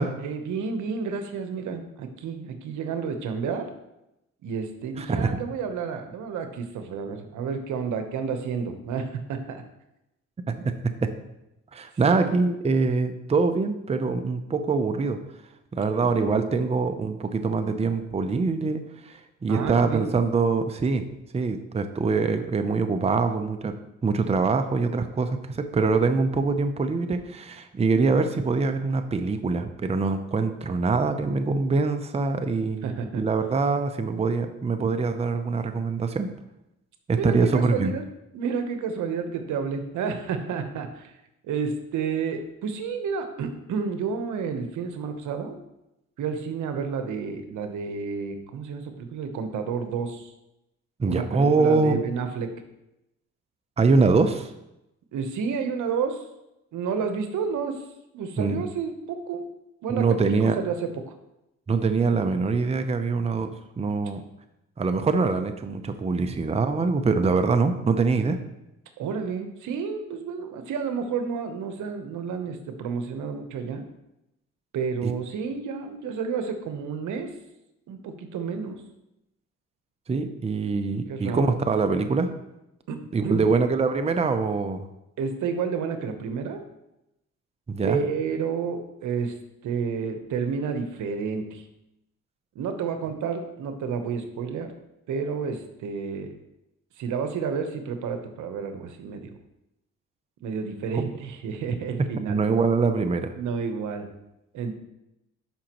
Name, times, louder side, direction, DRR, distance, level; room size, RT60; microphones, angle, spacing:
voice 1, 0.2-3.7 4.4-9.6 12.1-12.4 16.0-16.5 19.5-20.1 32.8-33.2 37.1-38.0 38.3-41.1 41.4-45.6 46.2-50.3 51.0-52.6 55.1-56.3 56.7-57.9 58.1-59.5 59.8-60.2 60.6-61.1 69.0-73.8 74.7-77.4 77.9-78.8 81.1-81.5 82.9-83.5 85.2-86.6 87.8-89.4 89.6-91.6 92.5-94.7 95.1-96.3 97.0-99.3 100.4-102.4 103.4-104.1 104.5-104.8, right 6 dB, 80° right, 7 dB, 1.0 m, -30 dB
voice 2, 5.0-5.4 10.5-11.1 11.7-15.2 15.7-21.1 21.3-23.8 24.0-36.3 37.1-37.9 51.0-52.1 53.8-54.5 58.4-58.6 59.9-60.6 61.7-64.2 64.8-68.4 75.0-75.1 80.1-82.3 83.1-84.9 87.7-88.0 100.9-101.0 102.3-103.3, right 4 dB, 20° right, 8 dB, 0.6 m, -24 dB
11.5 x 5.0 x 3.0 m, 0.89 s
cardioid pair, 90°, 30 cm